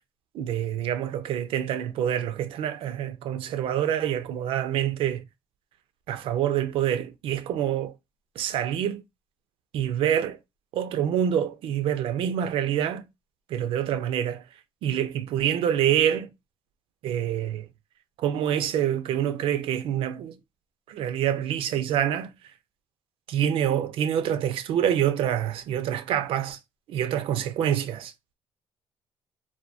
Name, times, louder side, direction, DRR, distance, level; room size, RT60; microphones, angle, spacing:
voice 1, 0.3-5.3 6.1-7.9 8.4-9.0 9.7-10.4 10.7-13.1 13.5-14.4 14.8-16.3 17.0-17.7 18.2-20.4 20.9-22.3 23.3-26.6 26.9-28.1, right 10 dB, 75° right, 0.4 m, -26 dB
2.5 x 2.1 x 2.5 m
cardioid pair, 130°, 9 cm